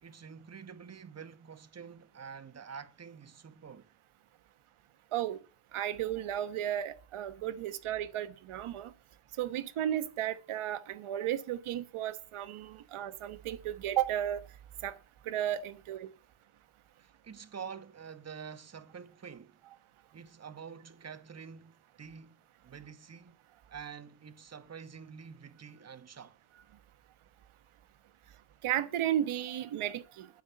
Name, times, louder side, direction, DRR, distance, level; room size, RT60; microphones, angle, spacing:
voice 1, 0.0-3.9 17.0-19.6 20.1-23.4 23.7-26.4, right 6 dB, 30° right, 1.2 m, -47 dB
voice 2, 5.7-8.9 9.4-14.4 14.8-15.0 15.2-16.1 28.6-30.4, right 11 dB, 80° right, 1.2 m, -34 dB
12.0 x 5.6 x 8.5 m
cardioid pair, 90°, 49 cm